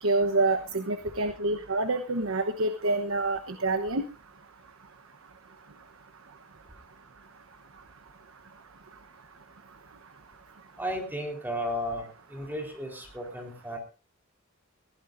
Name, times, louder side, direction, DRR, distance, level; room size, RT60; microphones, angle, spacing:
voice 1, 0.0-4.0, right 2 dB, 85° right, 9 dB, 1.1 m, -27 dB
voice 2, 10.8-13.8, equal, 10° right, 2 dB, 4.1 m, -34 dB
22.5 x 15.5 x 2.7 m, 0.32 s
head